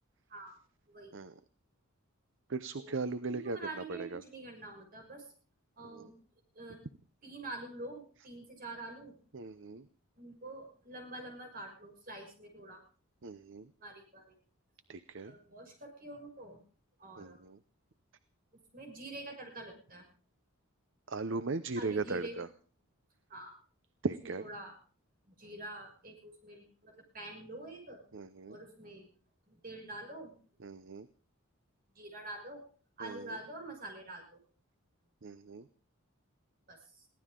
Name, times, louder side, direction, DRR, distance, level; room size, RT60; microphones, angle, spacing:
voice 1, 0.8-1.2 2.8-5.3 5.8-6.2 6.5-6.9 7.2-9.2 10.2-12.8 13.8-14.3 15.2-16.6 17.0-17.4 18.7-20.0 21.8-22.5 23.3-23.5 24.4-24.7 25.2-28.0 28.5-29.1 29.5-30.3 31.9-32.6 33.0-34.4 36.7-37.1, right 2 dB, 40° right, 2 dB, 6.5 m, -46 dB
voice 2, 2.5-3.6 3.9-4.2 5.9-6.1 9.3-9.9 13.2-13.7 14.9-15.3 17.2-17.6 21.1-22.5 24.0-24.4 28.1-28.6 30.6-31.1 33.0-33.4 35.2-35.7, right 3 dB, 60° right, 13 dB, 0.7 m, -38 dB
22.5 x 16.0 x 3.8 m, 0.40 s
head